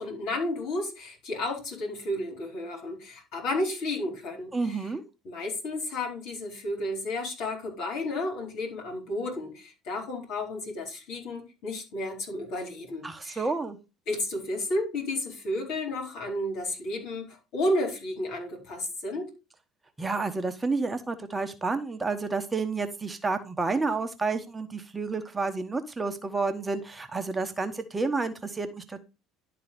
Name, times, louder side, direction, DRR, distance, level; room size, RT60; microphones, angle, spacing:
voice 1, 0.0-4.8 5.2-13.5 14.1-19.3, left 1 dB, 60° left, 1 dB, 4.2 m, -32 dB
voice 2, 4.5-5.0 13.0-13.8 20.0-29.0, right 3 dB, 20° right, 7 dB, 1.2 m, -30 dB
11.5 x 3.9 x 5.3 m, 0.28 s
figure-of-eight pair, 65°, 0 cm